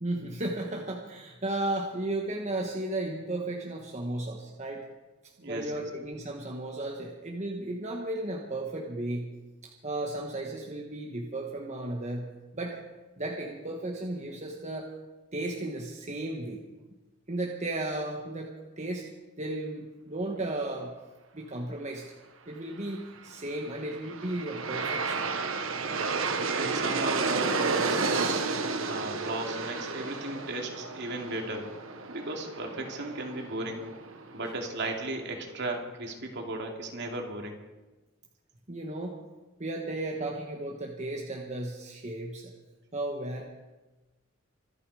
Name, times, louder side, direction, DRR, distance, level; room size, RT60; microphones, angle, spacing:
voice 1, 0.0-4.9 5.5-9.3 9.6-12.8 13.2-14.9 15.3-16.6 17.3-19.1 19.4-20.9 21.3-22.1 22.5-25.2 38.7-39.2 39.6-42.5 42.9-43.4, right 2 dB, 35° right, 0 dB, 1.4 m, -34 dB
voice 2, 5.4-5.8 26.3-28.4 28.9-31.7 32.1-33.9 34.3-37.6, right 2 dB, 55° right, 2 dB, 2.7 m, -36 dB
Aircraft, 23.6-34.7, right 4 dB, 75° right, 1.4 m, -32 dB
25.5 x 9.9 x 4.9 m, 1.2 s
head